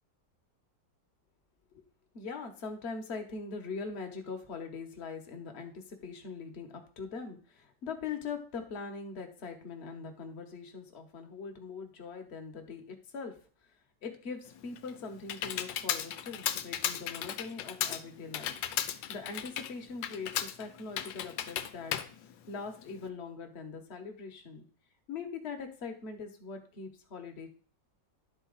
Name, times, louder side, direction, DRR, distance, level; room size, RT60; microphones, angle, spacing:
voice 1, 2.1-13.3 14.0-18.5 18.8-21.9 22.5-24.7 25.1-27.5, left 4 dB, 45° left, 4 dB, 1.1 m, -42 dB
Computer keyboard, 14.5-23.1, left 10 dB, 90° left, 1.3 m, -36 dB
10.5 x 4.1 x 3.9 m, 0.43 s
omnidirectional pair, 1.9 m